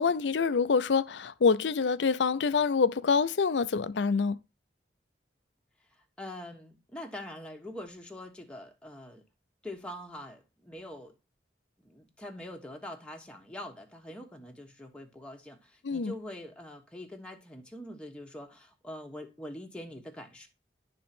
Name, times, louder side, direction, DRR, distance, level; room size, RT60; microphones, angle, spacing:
voice 1, 0.0-4.4 15.8-16.1, left 5 dB, 90° left, 0.5 m, -26 dB
voice 2, 5.9-9.2 9.6-11.1 11.8-20.5, left 1 dB, 5° left, 1.2 m, -44 dB
11.5 x 3.8 x 5.9 m
head